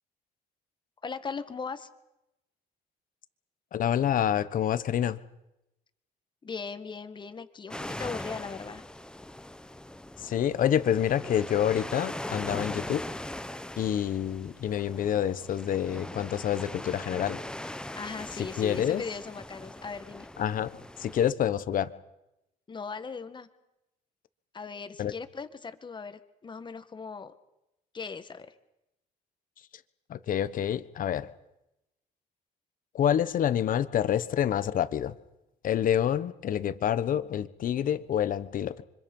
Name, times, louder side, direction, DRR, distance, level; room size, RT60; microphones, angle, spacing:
voice 1, 1.0-1.9 6.4-8.8 17.9-20.3 22.7-23.5 24.5-27.3 27.9-28.5, left 5 dB, 25° left, 10 dB, 1.7 m, -39 dB
voice 2, 3.7-5.2 10.2-13.0 13.8-17.4 18.6-19.0 20.4-21.9 25.0-25.1 30.1-31.3 32.9-35.1 35.6-38.8, left 10 dB, 55° left, 14 dB, 1.2 m, -27 dB
sound 1, 7.7-21.3, left 1 dB, 5° left, 0.9 m, -40 dB
29.5 x 25.0 x 5.6 m, 0.91 s
cardioid pair, 110°, 17 cm